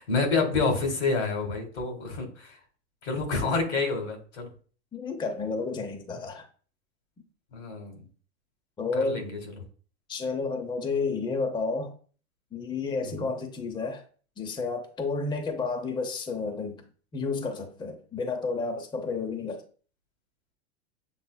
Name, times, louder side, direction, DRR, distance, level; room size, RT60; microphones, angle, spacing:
voice 1, 0.0-2.3 3.0-4.5 7.5-8.0 8.9-9.4 13.0-13.2, left 3 dB, 85° left, 1.7 m, -28 dB
voice 2, 4.9-6.5 8.8-9.3 10.1-11.9 12.5-14.0 14.4-16.8 17.1-19.6, left 4 dB, 15° left, 0.6 m, -31 dB
7.0 x 3.0 x 2.2 m
hypercardioid pair, 110°, 33 cm